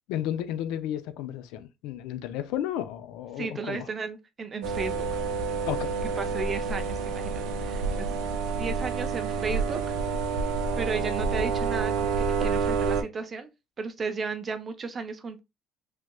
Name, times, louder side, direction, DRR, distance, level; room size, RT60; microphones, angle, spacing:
voice 1, 0.1-3.9 5.7-6.0, left 11 dB, 80° left, 0.4 m, -33 dB
voice 2, 3.4-5.2 6.2-8.1 8.6-9.9 10.8-13.5 13.8-15.4, right 5 dB, 25° right, 0.5 m, -34 dB
sound 1, 4.6-13.0, right 5 dB, 80° right, 0.6 m, -28 dB
3.2 x 3.0 x 2.2 m
cardioid pair, 155°, 0 cm